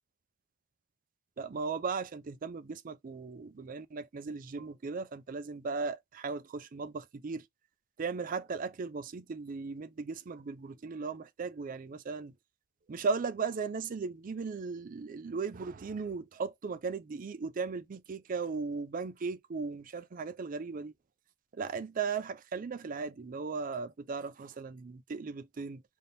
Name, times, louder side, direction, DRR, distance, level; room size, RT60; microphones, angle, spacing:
voice 1, 1.4-7.4 8.0-12.3 12.9-20.9 21.5-25.8, right 4 dB, 40° right, 0.4 m, -37 dB
3.5 x 2.6 x 3.9 m
head